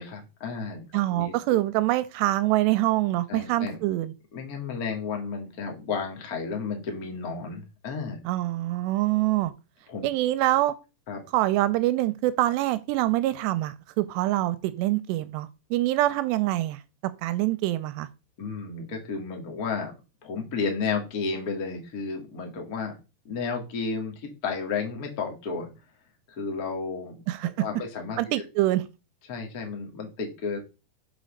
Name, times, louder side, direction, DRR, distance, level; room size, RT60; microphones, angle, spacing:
voice 1, 0.0-0.8 1.1-1.6 3.3-3.8 4.3-8.2 9.9-10.0 11.1-11.2 18.4-19.9 20.2-22.9 23.2-25.7 26.3-27.1 27.6-28.2 29.3-30.6, left 5 dB, 70° left, 0.8 m, -32 dB
voice 2, 0.9-4.1 8.3-9.5 10.0-10.7 11.3-16.8 17.2-18.1 27.3-27.7 28.2-28.8, right 16 dB, 85° right, 2.6 m, -25 dB
6.3 x 5.1 x 6.4 m
omnidirectional pair, 5.1 m